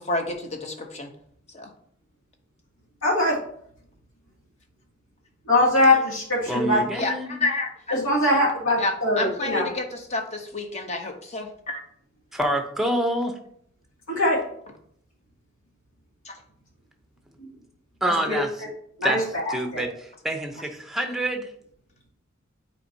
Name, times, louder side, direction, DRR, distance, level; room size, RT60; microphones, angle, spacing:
voice 1, 0.1-1.1 1.5-1.7 7.0-8.0 8.8-9.9 10.1-11.8 16.3-16.4, left 2 dB, 30° left, 4 dB, 0.9 m, -29 dB
voice 2, 3.0-3.4 5.4-6.8 7.9-9.7 14.1-14.4 17.4-17.5 18.1-18.4 19.0-19.8, left 1 dB, 85° left, -4 dB, 2.4 m, -22 dB
voice 3, 6.5-7.4 12.3-13.3 18.0-18.5 19.0-19.2 19.5-19.9 20.2-21.5, right 1 dB, ahead, 3 dB, 0.7 m, -26 dB
8.9 x 4.4 x 2.8 m, 0.66 s
head